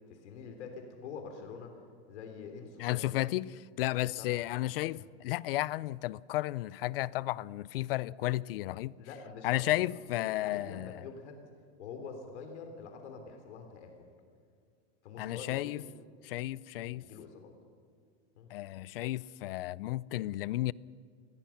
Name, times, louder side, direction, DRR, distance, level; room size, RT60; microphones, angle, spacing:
voice 1, 0.1-1.8 2.1-3.1 4.2-4.4 4.9-5.0 9.0-11.4 11.8-13.9 15.0-15.9 16.9-17.5 18.4-18.5, left 5 dB, 90° left, 3.3 m, -46 dB
voice 2, 2.8-9.0 9.4-11.0 15.2-15.8 16.2-17.1 18.5-20.7, left 16 dB, 55° left, 0.5 m, -33 dB
28.5 x 20.5 x 5.8 m
supercardioid pair, 180°, 34 cm